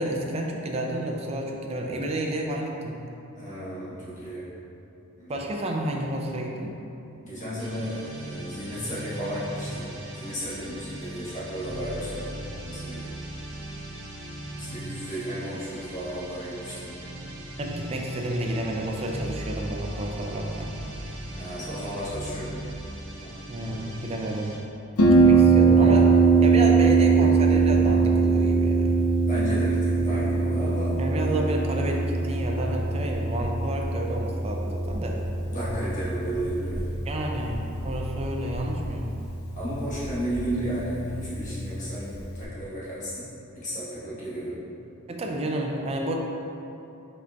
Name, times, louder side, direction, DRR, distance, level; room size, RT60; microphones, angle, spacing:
voice 1, 0.0-3.0 5.3-6.8 17.6-20.7 23.5-24.5 25.2-29.0 31.0-35.2 37.1-39.2 45.1-46.1, right 1 dB, 30° right, 0 dB, 0.4 m, -30 dB
voice 2, 3.3-4.5 5.2-5.5 7.2-9.9 10.2-13.2 14.6-16.9 21.3-22.6 23.1-23.3 29.3-31.0 35.4-36.9 39.4-43.3 43.5-44.6, equal, 35° left, -11 dB, 1.3 m, -33 dB
sound 1, 7.6-24.6, right 1 dB, 75° right, 0.7 m, -38 dB
Harp, 25.0-42.4, right 4 dB, 70° left, 0.5 m, -22 dB
5.0 x 3.9 x 2.2 m, 2.8 s
head